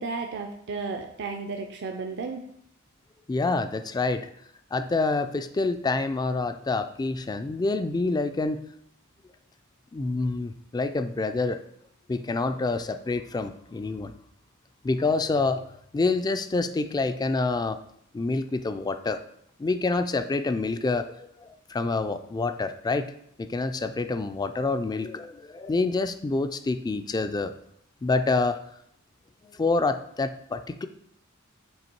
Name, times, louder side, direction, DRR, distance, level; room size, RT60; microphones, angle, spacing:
voice 1, 0.0-2.4, right 4 dB, 55° right, 4 dB, 0.5 m, -33 dB
voice 2, 3.3-4.3 4.7-8.6 9.9-11.6 12.1-14.1 14.8-17.8 18.1-19.2 19.6-23.1 23.4-27.5 28.0-28.6 29.4-30.9, left 3 dB, 20° left, 10 dB, 0.3 m, -27 dB
7.8 x 3.1 x 4.5 m, 0.72 s
head